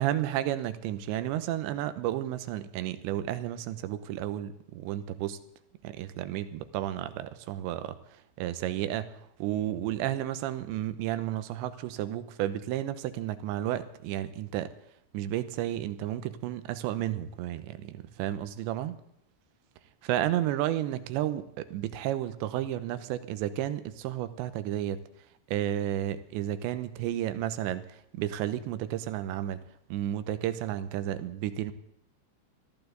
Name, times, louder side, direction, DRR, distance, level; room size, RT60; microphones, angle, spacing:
voice 1, 0.0-5.4 5.8-8.0 8.4-9.1 9.4-14.7 15.1-19.0 20.0-25.0 25.5-29.6 29.9-31.7, right 12 dB, 80° right, 12 dB, 3.1 m, -32 dB
21.5 x 14.5 x 4.0 m, 0.74 s
omnidirectional pair, 5.2 m